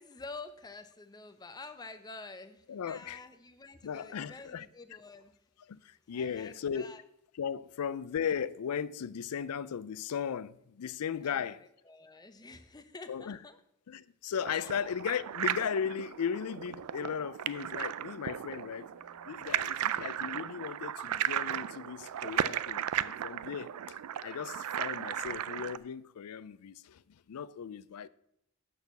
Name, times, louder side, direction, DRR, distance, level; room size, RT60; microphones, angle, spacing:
voice 1, 0.0-5.4 6.1-7.0 11.2-13.6 14.6-14.7 18.5-19.7, left 3 dB, 20° left, 0.6 m, -49 dB
voice 2, 2.7-3.2 3.8-4.7 5.7-7.0 7.4-11.6 13.1-13.4 13.9-18.9 19.3-27.0 27.3-28.1, left 7 dB, 85° left, 0.4 m, -36 dB
sound 1, 14.4-25.8, right 10 dB, 85° right, 0.4 m, -36 dB
6.7 x 6.3 x 6.9 m
head